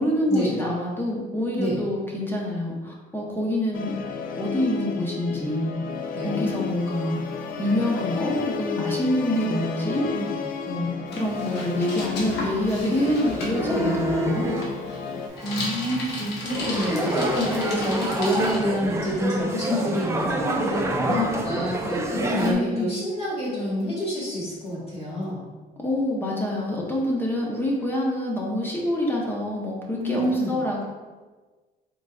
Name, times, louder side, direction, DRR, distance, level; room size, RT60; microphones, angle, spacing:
voice 1, 0.0-3.9 4.4-5.7 6.2-7.2 7.6-10.1 10.7-14.6 22.4-23.0 25.8-30.9, left 1 dB, 10° left, -3 dB, 0.7 m, -26 dB
Musical instrument, 3.7-15.3, left 5 dB, 55° left, 0.4 m, -32 dB
voice 2, 6.1-6.5 9.2-9.5 10.1-10.4 12.8-13.1 14.9-15.2 15.4-25.4 30.0-30.5, left 1 dB, 35° left, -9 dB, 1.4 m, -28 dB
Bicycle, 11.1-18.6, left 2 dB, 80° left, 0.8 m, -35 dB
sound 1, 13.5-14.7 15.3-22.5, right 1 dB, 15° right, 0.4 m, -28 dB
3.8 x 3.5 x 2.3 m, 1.3 s
cardioid pair, 110°, 17 cm